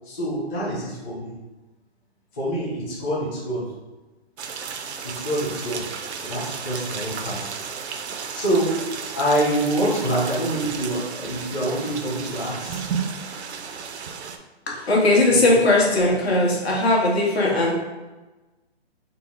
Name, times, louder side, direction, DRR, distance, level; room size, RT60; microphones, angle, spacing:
voice 1, 0.1-1.3 2.3-3.7 5.0-7.8 8.1-12.8 15.5-15.6, right 1 dB, 15° left, -8 dB, 0.4 m, -26 dB
sound 1, 4.4-14.4, right 6 dB, 90° right, 0.5 m, -33 dB
voice 2, 14.7-17.7, left 2 dB, 70° left, -3 dB, 1.4 m, -19 dB
4.0 x 2.1 x 3.5 m, 1.1 s
hypercardioid pair, 145°, 33 cm